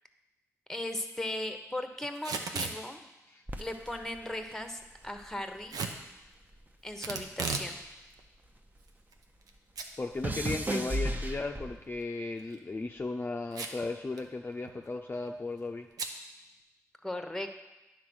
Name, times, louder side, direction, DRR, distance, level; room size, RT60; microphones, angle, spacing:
voice 1, 0.7-3.0 3.6-5.8 6.8-7.8 17.0-17.5, left 1 dB, 5° left, 6 dB, 1.0 m, -37 dB
Packing tape duct tape / Tearing, 2.1-2.8 5.7-6.0 7.0-7.7 8.1-8.2 8.9-9.5 9.8-9.9 10.3-10.4 12.3-12.6 13.5-13.9 14.2-14.3 14.5-14.9 16.0-16.2, right 4 dB, 85° right, 0.7 m, -35 dB
sound 1, 3.5-6.0 6.3-8.9 9.2-12.0 12.7-13.1, right 1 dB, 30° right, 0.9 m, -37 dB
voice 2, 10.0-15.9, left 3 dB, 35° left, 3 dB, 0.5 m, -36 dB
9.5 x 4.1 x 6.2 m, 1.0 s
cardioid pair, 50°, 6 cm